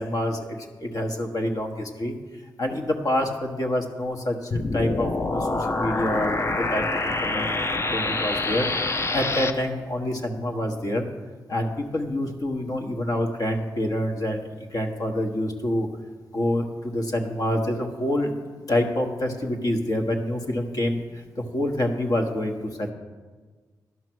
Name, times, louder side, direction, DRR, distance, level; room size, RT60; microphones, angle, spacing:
voice 1, 0.0-2.1 2.6-11.1 11.5-15.9 16.3-18.3 18.7-21.0 21.4-22.9, left 1 dB, 50° left, 3 dB, 1.3 m, -27 dB
sound 1, 4.5-9.5, left 2 dB, 35° left, 0.7 m, -26 dB
11.0 x 5.8 x 6.1 m, 1.4 s
cardioid pair, 65°, 8 cm